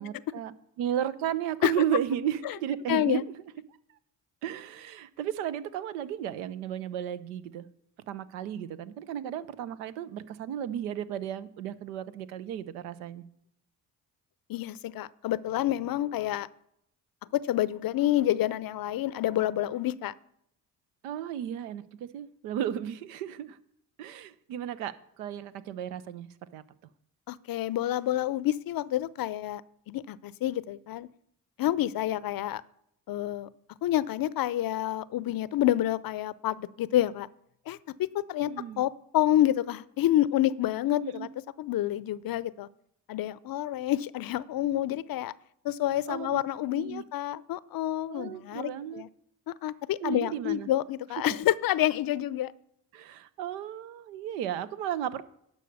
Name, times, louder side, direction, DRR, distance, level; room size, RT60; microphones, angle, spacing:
voice 1, 0.0-3.3 4.4-7.7 8.1-13.3 21.0-23.6 24.0-26.6 38.4-38.8 41.0-41.3 46.1-46.4 46.8-47.0 48.1-49.0 50.0-50.7 52.9-55.2, right 10 dB, 85° right, 15 dB, 0.6 m, -34 dB
voice 2, 2.9-3.2 14.5-16.5 17.3-20.1 27.3-29.6 29.9-31.1 31.6-32.6 33.1-33.5 33.8-37.3 37.7-38.5 38.8-41.3 41.6-42.7 43.1-45.3 45.6-49.1 49.5-52.5, left 13 dB, 50° left, 19 dB, 0.5 m, -28 dB
11.0 x 5.3 x 6.5 m, 0.74 s
hypercardioid pair, 45°, 45 cm